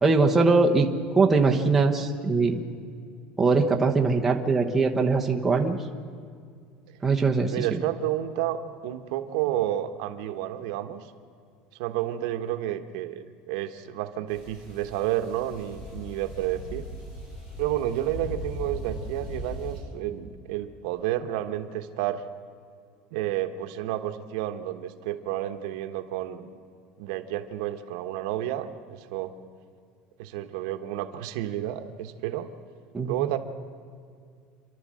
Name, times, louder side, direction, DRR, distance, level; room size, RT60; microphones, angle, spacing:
voice 1, 0.0-0.9 1.1-2.6 3.4-5.8 7.0-7.8 32.9-33.2, right 3 dB, 5° right, 0 dB, 1.0 m, -22 dB
voice 2, 7.4-8.6 8.8-11.0 11.8-16.8 17.6-22.2 23.1-26.6 27.0-29.3 30.2-32.5 33.0-33.4, right 13 dB, 70° right, 8 dB, 1.2 m, -30 dB
sound 1, 14.3-19.8, left 1 dB, 45° left, 7.7 m, -39 dB
28.5 x 12.0 x 7.6 m, 2.2 s
cardioid pair, 180°, 3 cm